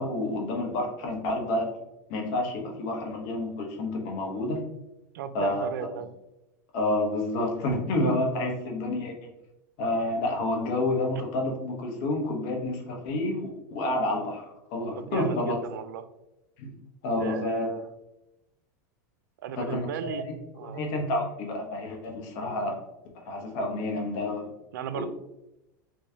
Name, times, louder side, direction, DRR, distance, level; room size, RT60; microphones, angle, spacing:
voice 1, 0.0-1.7 2.1-4.6 5.3-5.7 6.7-9.3 9.8-14.4 14.7-15.6 16.6-16.7 17.0-17.7 19.6-20.2 20.6-22.7 23.2-24.5 24.9-25.1, left 1 dB, 60° left, 1 dB, 1.0 m, -29 dB
voice 2, 5.1-6.1 8.4-8.7 15.0-16.1 17.2-17.9 19.4-20.3 20.5-20.8 24.7-25.1, right 8 dB, 85° right, 12 dB, 0.4 m, -36 dB
3.4 x 3.1 x 2.7 m, 0.89 s
supercardioid pair, 115°, 10 cm